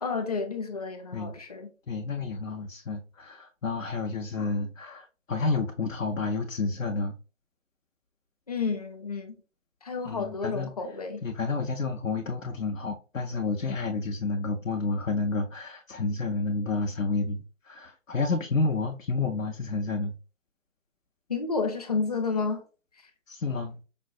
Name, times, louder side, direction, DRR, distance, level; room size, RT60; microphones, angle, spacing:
voice 1, 0.0-1.7 8.5-9.3 9.8-11.2 21.3-22.6, left 4 dB, 30° left, 0.5 m, -30 dB
voice 2, 1.9-7.2 10.0-10.7 11.2-20.1 23.3-23.8, left 3 dB, 80° left, 0.7 m, -30 dB
5.2 x 2.1 x 2.3 m
figure-of-eight pair, 140°, 38 cm